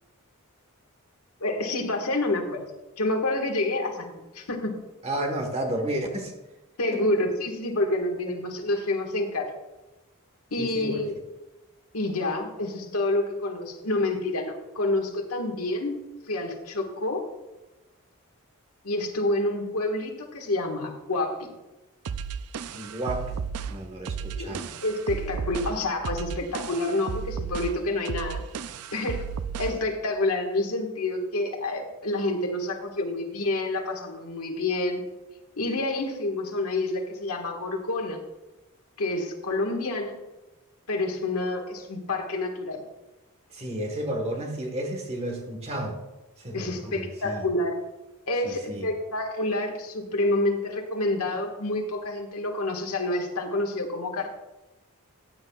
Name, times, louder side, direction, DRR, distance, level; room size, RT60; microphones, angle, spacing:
voice 1, 1.4-2.6 3.0-4.8 6.8-9.5 10.5-11.1 11.9-16.0 16.3-17.2 18.8-21.5 24.4-28.4 28.9-29.3 29.6-35.0 35.6-38.2 39.0-40.2 40.9-42.8 46.5-47.8 48.3-54.3, left 2 dB, 75° left, 3 dB, 1.6 m, -28 dB
voice 2, 5.0-6.3 6.9-7.1 8.3-8.4 10.6-11.1 22.7-24.7 43.5-46.0 46.4-47.5 48.4-48.9, right 1 dB, 30° right, 3 dB, 1.3 m, -32 dB
sound 1, 22.1-29.9, right 6 dB, 80° right, 0.4 m, -34 dB
14.5 x 9.2 x 2.4 m, 1.0 s
head